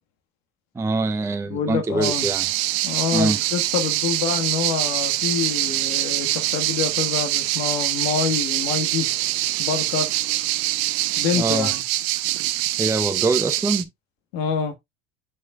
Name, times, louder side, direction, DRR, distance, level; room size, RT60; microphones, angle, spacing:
voice 1, 0.7-2.5 3.1-3.4 11.3-11.7 12.8-13.9, right 3 dB, 10° right, 0.6 m, -24 dB
voice 2, 1.5-2.3 2.8-9.1 9.6-10.1 11.2-11.8 14.3-14.7, left 6 dB, 70° left, 1.5 m, -26 dB
sound 1, 2.0-13.8, right 17 dB, 70° right, 0.8 m, -24 dB
8.3 x 5.3 x 2.2 m
supercardioid pair, 100°, 32 cm